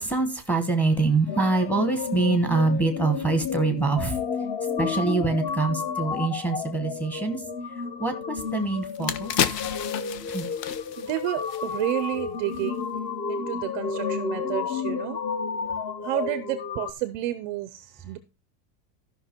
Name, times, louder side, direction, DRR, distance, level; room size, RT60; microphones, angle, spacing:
voice 1, 0.0-4.2 4.8-7.4 8.0-9.3 10.3-10.5, right 3 dB, 5° left, 1.0 m, -25 dB
sound 1, 1.3-16.9, left 5 dB, 20° left, 0.6 m, -31 dB
sound 2, 8.4-8.5 8.8-12.1 12.4-12.6, left 10 dB, 90° left, 1.3 m, -31 dB
voice 2, 11.0-12.8 13.3-15.2 16.0-18.2, right 16 dB, 30° right, 0.5 m, -31 dB
13.0 x 5.8 x 4.3 m
supercardioid pair, 170°, 47 cm